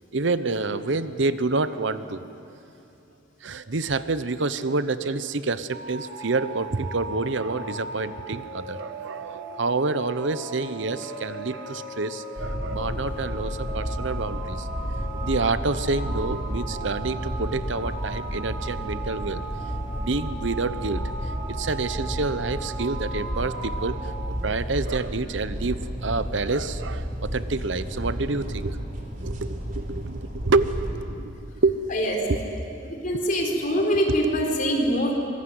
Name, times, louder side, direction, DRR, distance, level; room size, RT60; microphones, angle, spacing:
voice 1, 0.1-2.2 3.4-14.7 15.2-19.4 20.0-21.0 21.5-24.0 24.4-28.8 29.2-30.2 30.4-31.3 31.6-31.8 32.3-32.6 34.1-34.3, right 3 dB, 70° right, 13 dB, 0.9 m, -28 dB
sound 1, 5.7-24.2, right 3 dB, 90° right, 4.2 m, -38 dB
sound 2, 12.4-30.9, equal, 40° right, 3.7 m, -32 dB
voice 2, 33.0-35.1, equal, 45° left, 0 dB, 4.5 m, -23 dB
24.5 x 21.5 x 9.5 m, 2.7 s
head